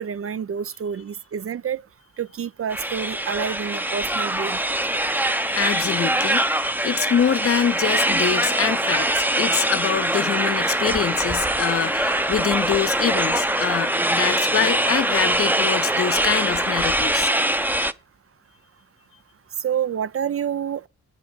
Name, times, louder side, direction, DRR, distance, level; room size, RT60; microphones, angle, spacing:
voice 1, 0.0-1.8 2.2-4.6 19.6-20.9, right 8 dB, 45° right, 0.5 m, -28 dB
sound 1, 2.7-17.9, right 1 dB, 5° right, 0.6 m, -23 dB
voice 2, 5.0-6.4 6.8-17.3, left 8 dB, 45° left, 0.6 m, -25 dB
9.2 x 5.3 x 7.9 m
cardioid pair, 55°, 32 cm